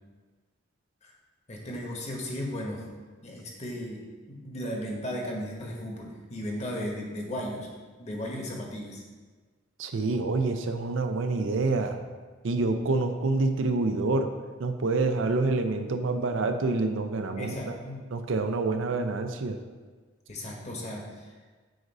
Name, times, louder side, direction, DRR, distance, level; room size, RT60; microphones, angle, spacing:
voice 1, 1.5-2.8 3.2-4.0 4.3-7.7 8.0-9.0 17.4-18.0 20.3-21.3, equal, 35° left, -1 dB, 1.1 m, -35 dB
voice 2, 9.8-12.0 12.4-14.3 14.6-17.7 18.1-19.6, right 3 dB, 70° right, 7 dB, 0.5 m, -27 dB
7.8 x 2.6 x 5.3 m, 1.4 s
head